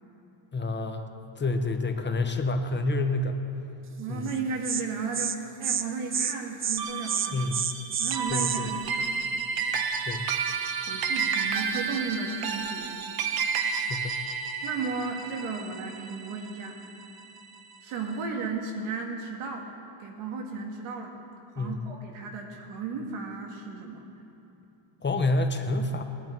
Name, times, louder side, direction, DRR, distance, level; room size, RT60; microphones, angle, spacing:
voice 1, 0.5-1.1 1.4-3.4 4.1-4.3 7.3-7.6 8.3-8.7 10.1-10.3 13.7-14.2 21.6-21.8 25.0-26.0, left 2 dB, 20° left, 5 dB, 0.9 m, -28 dB
voice 2, 4.0-7.5 8.0-9.1 10.9-13.0 13.6-13.9 14.6-16.8 17.8-19.7 20.0-21.1 21.6-24.0, right 4 dB, 85° right, 2 dB, 2.0 m, -34 dB
Insect, 4.3-4.4 4.6-4.8 5.1-5.4 5.6-5.8 6.1-6.3 6.6-6.8 7.1-8.6, right 8 dB, 25° right, 0.4 m, -28 dB
sound 1, 6.8-17.4, right 6 dB, 45° right, 1.0 m, -31 dB
19.5 x 11.5 x 4.5 m, 3.0 s
cardioid pair, 135°, 50 cm